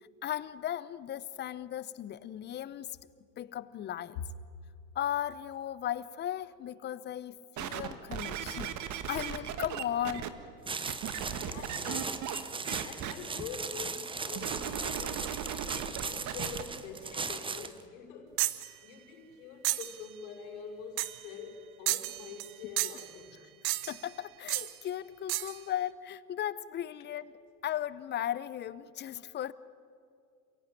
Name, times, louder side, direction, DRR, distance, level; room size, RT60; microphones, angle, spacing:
voice 1, 0.2-2.9 3.4-4.2 4.9-8.8 9.1-10.3 23.9-27.3 27.6-29.5, left 11 dB, 20° left, 0.7 m, -36 dB
sound 1, 7.6-10.3 10.9-12.4 12.7-13.1 14.4-16.6 17.3-17.4, right 9 dB, 35° right, 1.7 m, -37 dB
sound 2, 10.7-17.8, right 4 dB, 10° right, 1.0 m, -38 dB
voice 2, 11.1-15.4 15.7-18.4 18.8-23.4, left 6 dB, 60° left, 5.7 m, -45 dB
sound 3, 18.4-18.7 19.6-20.0 21.0-21.2 21.9-22.5 22.8-23.1 23.6-24.1 24.5-24.7 25.3-25.6, right 18 dB, 55° right, 1.3 m, -32 dB
29.0 x 16.0 x 9.1 m
hypercardioid pair, 100°, 49 cm